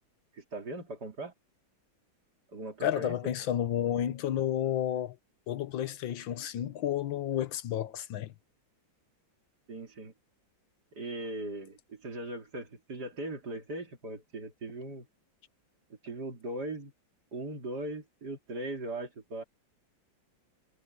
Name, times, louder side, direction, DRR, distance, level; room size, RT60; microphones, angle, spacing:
voice 1, 0.4-1.3 2.5-3.2 9.7-10.1 10.9-15.1 16.0-16.9 17.3-19.4, right 1 dB, 55° right, 3.6 m, -39 dB
voice 2, 2.8-5.2 5.5-8.3, left 11 dB, 80° left, 1.7 m, -31 dB
omnidirectional pair, 2.1 m